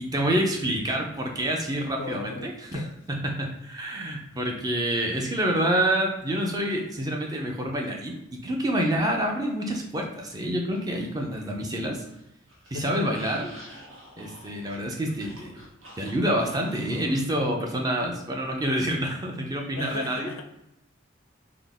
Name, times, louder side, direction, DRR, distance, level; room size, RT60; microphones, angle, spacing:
voice 1, 0.0-12.0 12.7-13.5 14.2-15.6 16.0-20.3, right 1 dB, 20° right, 1 dB, 0.4 m, -27 dB
voice 2, 2.0-2.9 12.7-13.2 19.8-20.4, left 3 dB, 90° left, 5 dB, 0.5 m, -36 dB
sound 1, 10.2-11.6 11.9-17.2, equal, 80° right, 1.0 m, -49 dB
3.8 x 2.0 x 3.5 m, 0.85 s
head